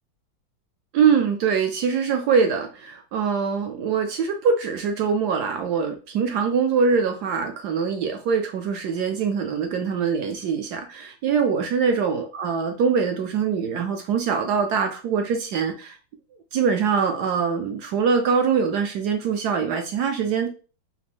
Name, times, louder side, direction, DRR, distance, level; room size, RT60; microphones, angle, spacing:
voice 1, 0.9-16.0 16.5-20.5, right 6 dB, 75° right, 5 dB, 0.9 m, -23 dB
4.9 x 2.5 x 3.4 m, 0.37 s
omnidirectional pair, 2.2 m